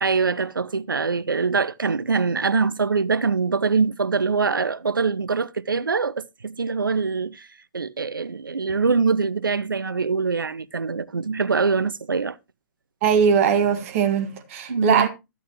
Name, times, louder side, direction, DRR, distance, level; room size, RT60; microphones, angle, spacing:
voice 1, 0.0-7.5 7.7-12.4 14.7-15.1, right 4 dB, 90° right, 0.6 m, -23 dB
voice 2, 13.0-15.1, right 7 dB, 40° right, 1.8 m, -20 dB
13.5 x 8.2 x 3.0 m
hypercardioid pair, 130°, 11 cm